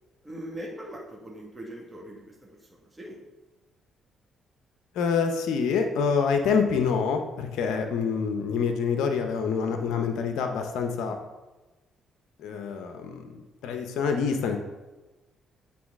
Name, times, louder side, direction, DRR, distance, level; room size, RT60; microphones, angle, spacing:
voice 1, 0.2-3.1 7.8-7.9, equal, 15° right, -3 dB, 1.5 m, -41 dB
voice 2, 4.9-11.2 12.4-14.6, left 6 dB, 80° left, 5 dB, 0.7 m, -26 dB
8.6 x 3.9 x 3.6 m, 1.1 s
supercardioid pair, 65°, 0 cm